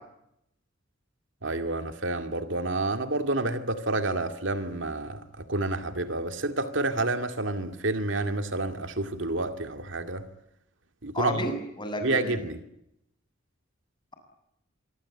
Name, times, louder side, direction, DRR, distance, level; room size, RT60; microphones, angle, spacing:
voice 1, 1.4-10.2 11.0-11.4 12.0-12.6, right 2 dB, 60° right, 8 dB, 2.2 m, -29 dB
voice 2, 11.1-12.3, left 1 dB, 20° left, 6 dB, 7.5 m, -31 dB
27.0 x 24.0 x 8.6 m, 0.81 s
head